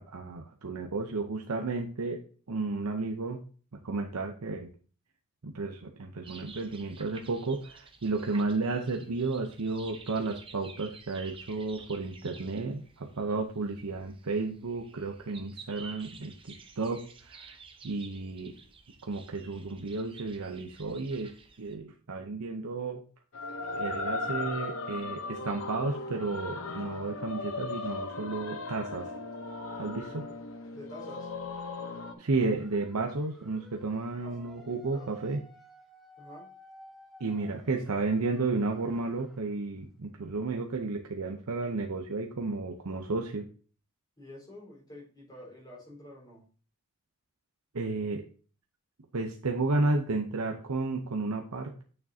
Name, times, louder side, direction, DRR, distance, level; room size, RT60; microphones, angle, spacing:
voice 1, 0.0-2.2 2.5-3.4 3.7-4.7 5.4-18.5 19.0-21.3 21.6-23.0 23.7-29.1 29.8-30.3 32.2-35.4 37.2-43.4 47.7-48.2 49.1-51.8, right 3 dB, 80° right, 2 dB, 0.8 m, -32 dB
sound 1, 6.2-21.7, right 5 dB, 25° right, 0.8 m, -52 dB
sound 2, 23.3-32.1, left 3 dB, 65° left, 0.9 m, -37 dB
voice 2, 30.7-31.3 34.2-34.4 34.7-35.1 36.2-36.5 44.2-46.4, left 1 dB, 20° left, -4 dB, 4.2 m, -48 dB
sound 3, 32.4-39.6, equal, ahead, 1.1 m, -55 dB
8.8 x 6.6 x 2.8 m, 0.40 s
head